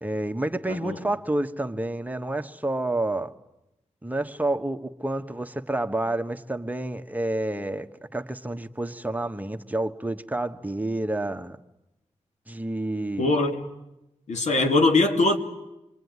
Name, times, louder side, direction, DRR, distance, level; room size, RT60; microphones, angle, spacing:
voice 1, 0.0-3.3 4.0-7.9 8.1-11.6 12.5-13.4, right 1 dB, 15° right, 1.3 m, -29 dB
voice 2, 13.2-13.6 14.3-15.4, left 2 dB, 90° left, 2.8 m, -21 dB
27.5 x 23.0 x 9.6 m
wide cardioid pair, 85°, 12 cm